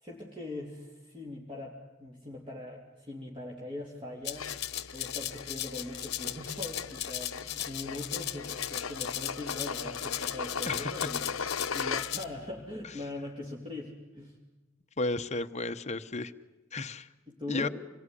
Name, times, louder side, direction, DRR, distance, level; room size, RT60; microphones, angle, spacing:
voice 1, 0.0-4.5 4.9-14.4 17.3-17.7, left 1 dB, 25° right, -2 dB, 3.3 m, -41 dB
Rattle (instrument), 4.2-12.2, left 13 dB, 55° left, 1.2 m, -37 dB
sound 1, 4.3-12.4, left 6 dB, 75° left, 1.0 m, -38 dB
voice 2, 15.0-16.3 16.7-17.1 17.5-17.7, left 3 dB, 35° left, 8 dB, 1.0 m, -33 dB
26.5 x 21.0 x 10.0 m, 1.0 s
head